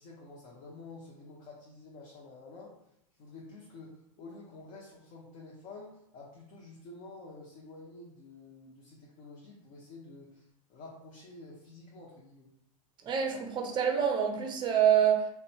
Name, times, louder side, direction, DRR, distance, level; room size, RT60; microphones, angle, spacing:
voice 1, 0.0-2.7 3.2-12.5, left 3 dB, 45° left, -4 dB, 0.7 m, -49 dB
voice 2, 13.0-15.3, right 8 dB, 25° right, 3 dB, 0.5 m, -26 dB
2.7 x 2.2 x 2.7 m, 0.79 s
hypercardioid pair, 100°, 18 cm